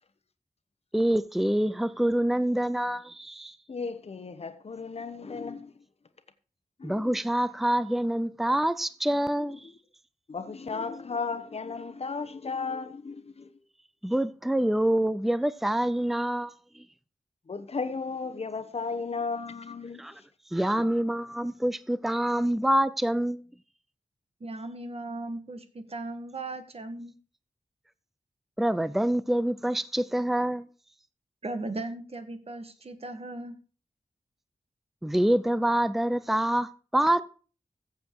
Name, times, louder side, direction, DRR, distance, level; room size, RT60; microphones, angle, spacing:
voice 1, 0.9-3.6 6.8-9.7 14.0-16.8 20.0-20.1 20.5-23.4 28.6-30.7 35.0-37.2, right 1 dB, ahead, 0.6 m, -26 dB
voice 2, 3.7-5.7 6.8-7.1 9.6-9.7 10.3-13.5 17.5-20.3 20.8-20.9, left 4 dB, 50° left, 1.1 m, -35 dB
voice 3, 24.4-27.1 31.4-33.6, right 2 dB, 50° right, 1.6 m, -37 dB
15.0 x 7.4 x 4.7 m
wide cardioid pair, 120°, 14 cm